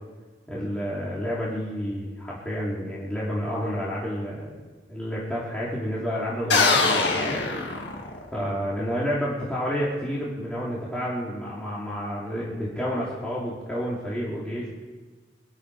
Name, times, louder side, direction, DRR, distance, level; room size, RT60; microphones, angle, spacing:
voice 1, 0.5-4.5 4.9-7.4 8.3-14.7, equal, 5° left, -7 dB, 2.9 m, -30 dB
sound 1, 6.5-8.4, left 3 dB, 70° left, 2.0 m, -23 dB
23.5 x 12.0 x 4.8 m, 1.4 s
head